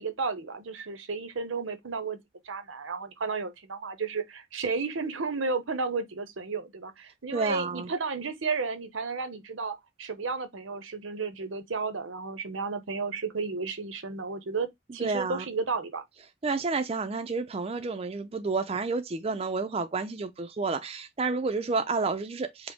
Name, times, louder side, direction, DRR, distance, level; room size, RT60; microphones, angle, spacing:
voice 1, 0.0-2.2 2.4-16.0, right 4 dB, 90° right, 0.8 m, -33 dB
voice 2, 7.3-7.9 15.0-15.5 16.4-22.7, right 4 dB, 30° right, 0.4 m, -30 dB
4.9 x 2.1 x 3.5 m
head